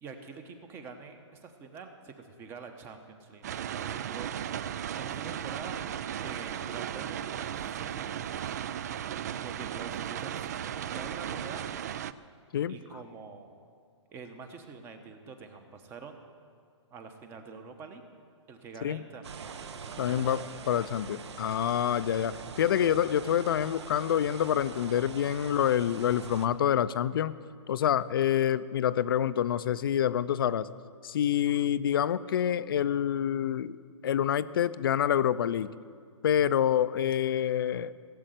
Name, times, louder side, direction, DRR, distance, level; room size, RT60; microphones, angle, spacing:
voice 1, 0.0-3.5 3.7-4.3 5.0-5.8 6.2-8.6 9.4-11.7 12.7-13.5 14.1-16.2 16.9-18.0 18.5-20.6, right 5 dB, 15° right, 7 dB, 1.0 m, -46 dB
sound 1, 3.4-12.1, right 9 dB, 35° right, 0.4 m, -36 dB
sound 2, 19.2-26.5, right 5 dB, 65° right, 1.2 m, -43 dB
voice 2, 20.0-20.4 20.7-27.4 27.7-30.7 31.0-33.8 34.0-35.7 36.2-37.9, left 10 dB, 50° left, 15 dB, 0.5 m, -27 dB
17.0 x 7.7 x 9.2 m, 2.1 s
hypercardioid pair, 160°, 16 cm